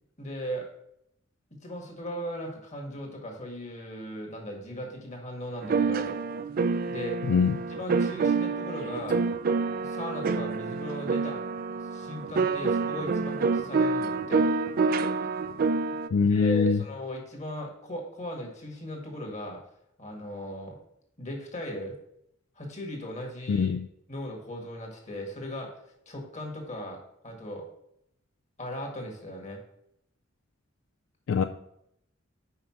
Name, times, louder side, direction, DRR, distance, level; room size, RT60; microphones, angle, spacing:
voice 1, 0.2-0.7 1.5-6.1 6.9-7.2 7.7-9.2 9.8-11.4 11.9-14.4 16.2-19.6 20.0-20.8 21.2-22.0 22.6-23.7 24.1-25.7 26.1-27.0 27.2-27.6 28.6-29.6, equal, 35° left, 1.8 m, -37 dB
sound 1, 5.6-16.1, right 4 dB, 45° right, 0.4 m, -27 dB
voice 2, 7.3-7.6 16.1-16.8 23.5-23.9 31.3-31.4, left 5 dB, 75° left, 0.3 m, -23 dB
5.7 x 5.2 x 5.7 m
head